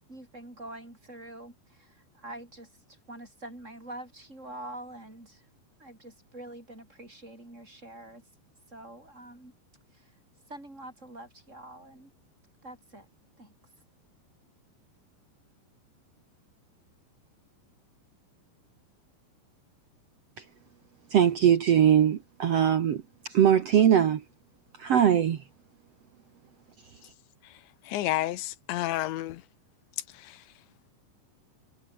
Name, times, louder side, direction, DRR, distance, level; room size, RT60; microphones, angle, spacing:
voice 1, 0.1-5.4 5.8-8.2 8.7-9.5 9.9-10.1 10.5-12.1 12.6-13.1 13.4-13.5, right 1 dB, 15° right, 6.8 m, -45 dB
voice 2, 21.1-24.2 24.8-25.4, right 9 dB, 80° right, 1.4 m, -21 dB
voice 3, 27.9-29.4 30.1-30.4, left 15 dB, 80° left, 3.4 m, -30 dB
omnidirectional pair, 5.2 m